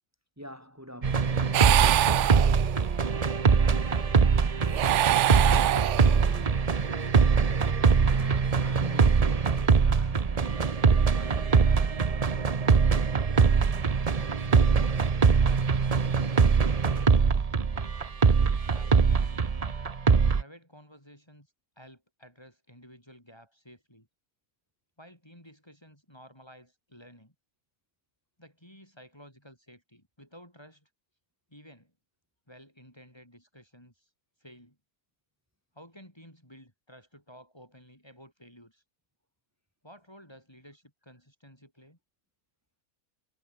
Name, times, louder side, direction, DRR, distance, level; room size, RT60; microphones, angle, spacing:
voice 1, 0.4-2.5 8.0-11.8 17.9-18.0, equal, 10° right, 7.4 m, -46 dB
sound 1, 1.0-20.4, right 5 dB, 30° right, 0.8 m, -23 dB
sound 2, 1.5-3.0 4.6-6.5, right 13 dB, 65° right, 0.8 m, -25 dB
voice 2, 3.3-5.3 5.6-7.2 13.1-13.7 14.2-17.4 18.4-19.4 20.3-24.1 25.0-27.3 28.4-30.9 31.5-31.9 32.5-34.1 34.4-34.8 35.7-38.8 39.8-42.0, equal, 15° left, 7.3 m, -53 dB
omnidirectional pair, 1.5 m